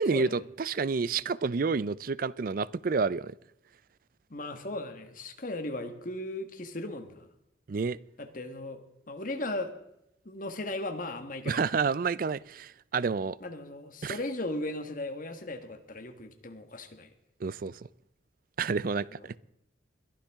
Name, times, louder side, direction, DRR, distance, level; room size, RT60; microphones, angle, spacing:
voice 1, 0.0-3.3 7.7-8.0 11.5-13.4 14.0-14.2 17.4-17.7 18.6-19.4, right 5 dB, 50° right, 19 dB, 0.4 m, -29 dB
voice 2, 4.3-7.3 8.2-8.8 9.1-9.7 10.2-11.6 13.4-17.1 19.1-19.3, left 2 dB, 45° left, 6 dB, 1.4 m, -37 dB
21.5 x 11.5 x 3.6 m, 0.81 s
head